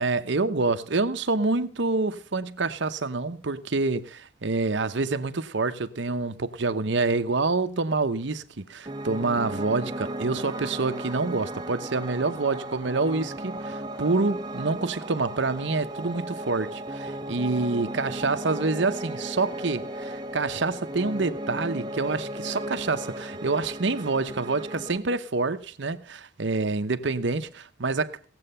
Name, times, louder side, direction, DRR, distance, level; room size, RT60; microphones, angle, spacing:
voice 1, 0.0-28.3, right 3 dB, 60° right, 0.8 m, -27 dB
Piano, 8.9-25.0, right 1 dB, 20° right, 0.8 m, -35 dB
18.0 x 7.7 x 5.5 m
head